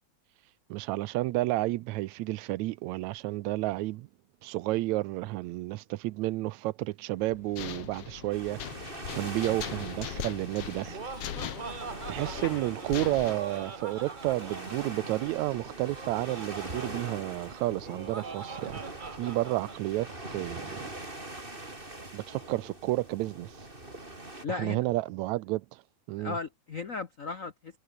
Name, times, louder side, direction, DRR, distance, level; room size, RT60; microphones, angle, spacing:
voice 1, 0.7-4.1 4.4-8.8 9.2-11.0 12.1-18.8 19.2-20.8 22.1-23.6 24.5-25.8 26.1-26.4, right 18 dB, 85° right, 1.9 m, -31 dB
sound 1, 7.2-13.3, left 10 dB, 60° left, 2.3 m, -40 dB
sound 2, 8.3-24.4, right 2 dB, 15° right, 4.4 m, -43 dB
Laughter, 10.7-19.8, right 4 dB, 55° right, 0.5 m, -43 dB
voice 2, 24.4-24.8 26.2-27.8, left 4 dB, 75° left, 0.7 m, -36 dB
omnidirectional pair, 3.3 m